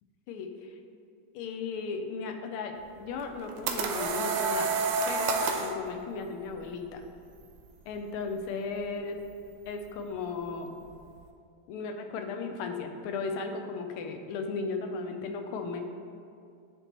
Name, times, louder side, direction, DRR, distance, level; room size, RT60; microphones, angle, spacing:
voice 1, 0.3-0.8 1.3-4.8 5.1-7.0 7.9-9.2 9.7-10.8 11.7-15.8, left 4 dB, 85° left, 5 dB, 1.5 m, -36 dB
sound 1, 3.2-5.8, right 4 dB, 90° right, 1.5 m, -29 dB
9.7 x 3.6 x 2.9 m, 2.5 s
omnidirectional pair, 2.3 m